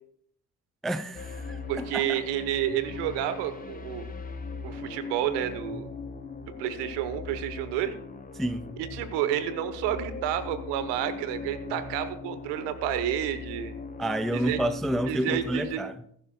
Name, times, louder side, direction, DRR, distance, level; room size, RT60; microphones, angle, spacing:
voice 1, 0.8-2.2 8.4-8.7 14.0-15.9, right 1 dB, ahead, 0.5 m, -29 dB
sound 1, 1.1-15.7, left 4 dB, 20° left, 1.5 m, -39 dB
voice 2, 1.7-4.0 4.6-5.9 6.6-7.9 8.8-13.7 14.3-14.6 15.1-15.8, right 11 dB, 60° right, 1.2 m, -30 dB
20.5 x 11.0 x 2.3 m
figure-of-eight pair, 45°, 46 cm